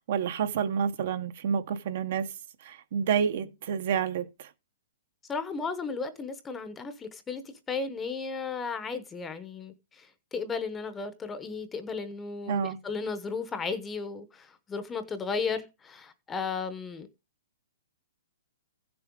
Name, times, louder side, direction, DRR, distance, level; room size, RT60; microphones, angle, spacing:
voice 1, 0.0-2.3 2.6-4.5 12.5-12.8, right 7 dB, 40° right, 0.8 m, -29 dB
voice 2, 5.3-7.4 7.7-17.1, left 4 dB, 10° left, 0.8 m, -34 dB
15.5 x 7.0 x 3.6 m
hypercardioid pair, 175°, 0 cm